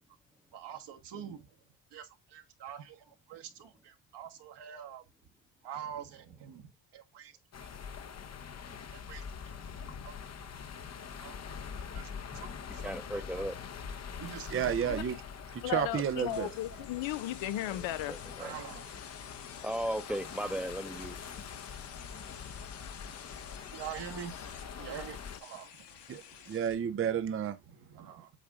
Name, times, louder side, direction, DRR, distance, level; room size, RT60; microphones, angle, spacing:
voice 1, 0.5-1.5 1.9-5.0 5.6-7.3 7.6-7.7 8.9-9.2 10.0-10.1 11.2-11.6 11.9-13.4 14.2-15.1 16.4-16.5 18.4-18.9 20.1-20.6 23.7-24.3 24.8-25.7 27.7-28.3, right 9 dB, 65° right, 1.5 m, -45 dB
sound 1, 7.5-25.4, left 6 dB, 35° left, 0.8 m, -44 dB
voice 2, 12.8-13.5 17.7-18.5 19.6-21.2, equal, 5° right, 0.9 m, -36 dB
voice 3, 14.5-15.2 15.5-16.5 26.1-27.6, right 8 dB, 30° right, 0.6 m, -31 dB
voice 4, 15.6-18.2, left 13 dB, 80° left, 0.9 m, -35 dB
sound 2, 16.3-26.7, left 8 dB, 65° left, 1.7 m, -51 dB
8.4 x 4.3 x 3.6 m
cardioid pair, 130°, 45 cm